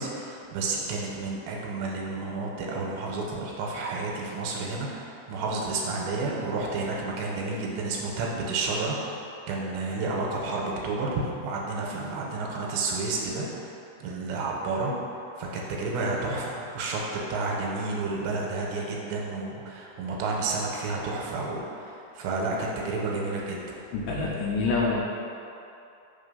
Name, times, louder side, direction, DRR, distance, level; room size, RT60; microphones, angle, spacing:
voice 1, 0.0-9.2 9.5-13.8 14.0-14.9 15.4-23.6, right 3 dB, 90° right, -2 dB, 2.5 m, -31 dB
voice 2, 23.9-25.0, left 3 dB, 80° left, -4 dB, 1.9 m, -26 dB
5.1 x 3.7 x 5.4 m, 2.7 s
omnidirectional pair, 4.3 m